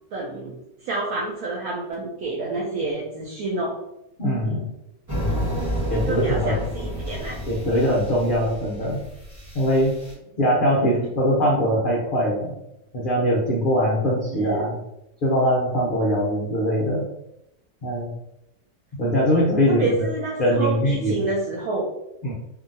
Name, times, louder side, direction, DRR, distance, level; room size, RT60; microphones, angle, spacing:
voice 1, 0.1-0.6 0.8-3.8 4.4-4.6 6.0-7.4 14.3-14.6 19.7-21.9, right 3 dB, 70° right, -3 dB, 0.9 m, -28 dB
voice 2, 4.2-4.7 5.1-5.5 5.9-6.6 7.5-9.0 9.5-9.9 10.4-12.5 12.9-14.8 15.2-17.0 17.8-18.1 19.0-20.1 20.4-21.2 22.2-22.3, equal, 70° left, -5 dB, 0.5 m, -22 dB
sound 1, 5.1-10.1, equal, 15° right, 0.7 m, -30 dB
2.8 x 2.6 x 2.6 m, 0.82 s
omnidirectional pair, 1.8 m